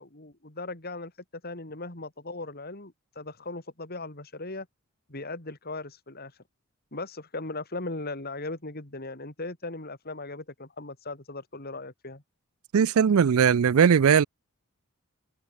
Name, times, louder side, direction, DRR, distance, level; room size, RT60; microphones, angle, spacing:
voice 1, 0.0-4.7 5.1-6.3 6.9-12.2, left 2 dB, 45° left, 3.4 m, -38 dB
voice 2, 12.7-14.2, right 7 dB, 80° right, 0.4 m, -19 dB
open air
head